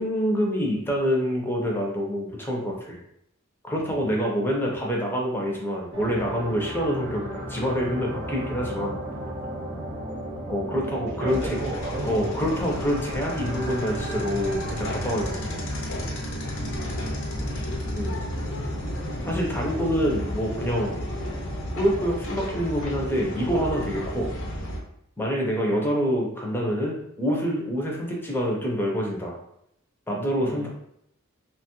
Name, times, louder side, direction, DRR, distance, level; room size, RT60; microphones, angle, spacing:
voice 1, 0.0-3.0 3.6-9.0 10.5-11.6 12.0-15.6 17.9-18.2 19.2-20.9 21.8-24.3 25.2-29.4 30.1-30.7, equal, 10° left, -2 dB, 0.5 m, -26 dB
sound 1, 5.9-22.4, equal, 25° right, 0.8 m, -35 dB
voice 2, 11.1-12.3 30.3-30.7, right 2 dB, 50° right, 1 dB, 0.5 m, -36 dB
sound 2, 11.3-24.8, equal, 65° left, 0.6 m, -33 dB
2.9 x 2.2 x 2.9 m, 0.76 s
head